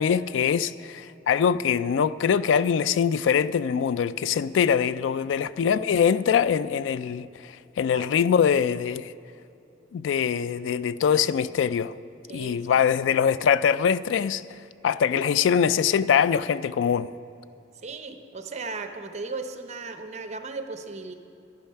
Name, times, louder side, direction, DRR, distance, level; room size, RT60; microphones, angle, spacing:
voice 1, 0.0-9.1 9.9-11.9 12.3-14.4 14.8-17.1, left 7 dB, 80° left, 0.3 m, -23 dB
voice 2, 12.3-12.8 15.1-15.3 17.8-21.1, right 3 dB, 35° right, 0.7 m, -36 dB
11.5 x 10.5 x 5.6 m
head